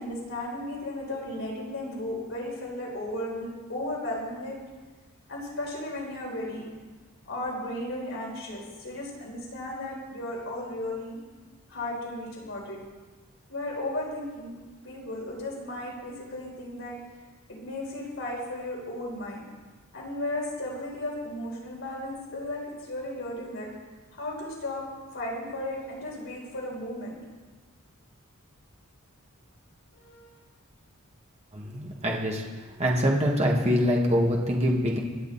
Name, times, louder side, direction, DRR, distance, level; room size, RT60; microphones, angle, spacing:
voice 1, 0.0-4.5 5.3-6.7 7.2-11.2 11.7-12.8 13.5-14.6 14.8-17.0 17.5-19.4 19.9-23.7 24.1-24.8 25.1-27.2 29.9-30.3, left 1 dB, 65° left, -3 dB, 4.7 m, -35 dB
voice 2, 31.5-35.0, equal, 30° right, -1 dB, 2.0 m, -25 dB
26.5 x 8.9 x 4.3 m, 1.3 s
head